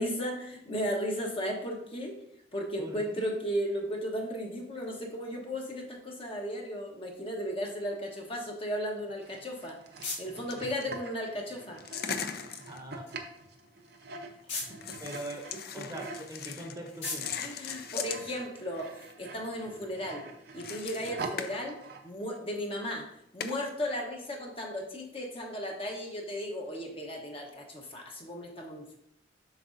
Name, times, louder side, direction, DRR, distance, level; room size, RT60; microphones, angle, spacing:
voice 1, 0.0-2.1 2.5-9.8 10.2-11.8 14.5-14.6 17.4-20.2 20.5-21.8 22.0-23.0 23.3-29.0, equal, 30° left, 1 dB, 1.1 m, -35 dB
voice 2, 2.8-3.4 12.7-13.1 15.0-15.4 15.7-17.5, right 1 dB, 20° right, 1 dB, 0.9 m, -42 dB
sound 1, 9.2-18.6, left 3 dB, 85° left, 1.9 m, -45 dB
sound 2, 9.2-16.3 16.7-22.1, right 3 dB, 60° right, 0.7 m, -45 dB
sound 3, 10.5-10.8 11.8-13.1 13.9-14.4 14.8-18.3 18.7-19.3 20.5-21.6 22.3-22.4 23.4-23.6, left 7 dB, 55° left, 0.5 m, -39 dB
7.8 x 6.0 x 2.6 m, 0.75 s
head